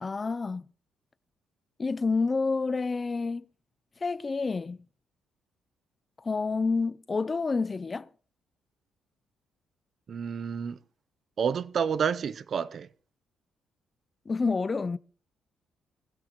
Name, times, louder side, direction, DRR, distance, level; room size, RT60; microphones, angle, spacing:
voice 1, 0.0-0.7 1.8-3.4 4.0-4.8 6.2-8.1 14.3-15.0, left 4 dB, 30° left, 0.6 m, -28 dB
voice 2, 10.1-10.8 11.4-12.9, right 7 dB, 50° right, 0.7 m, -29 dB
21.0 x 15.5 x 3.1 m
cardioid pair, 90°, 0 cm